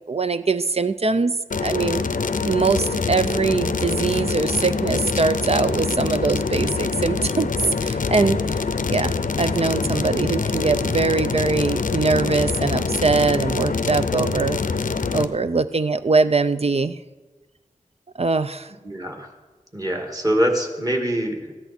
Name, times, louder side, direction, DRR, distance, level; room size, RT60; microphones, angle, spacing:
voice 1, 0.1-2.0 2.4-8.4 8.9-14.6 15.1-17.0 18.2-18.7, right 4 dB, 45° right, 12 dB, 0.4 m, -22 dB
sound 1, 1.5-15.3, left 4 dB, 75° left, 0.6 m, -25 dB
voice 2, 18.8-19.3 19.7-21.5, right 1 dB, 25° right, 2 dB, 2.1 m, -24 dB
14.5 x 10.5 x 4.3 m, 1.2 s
wide cardioid pair, 45°, 14 cm